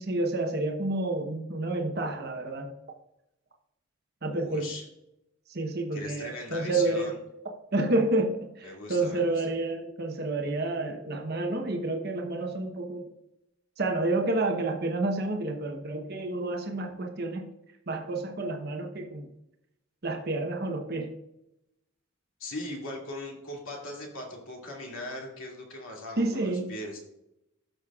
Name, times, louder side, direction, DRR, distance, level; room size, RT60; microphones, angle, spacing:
voice 1, 0.0-2.7 4.2-4.7 5.5-7.1 7.7-13.0 13.8-17.5 17.9-19.3 20.0-21.1 26.2-26.7, right 2 dB, 45° right, 2 dB, 1.0 m, -29 dB
voice 2, 4.3-4.8 5.9-7.2 8.6-9.2 22.4-27.0, left 1 dB, 70° left, -1 dB, 2.5 m, -39 dB
13.5 x 6.5 x 2.4 m, 0.85 s
head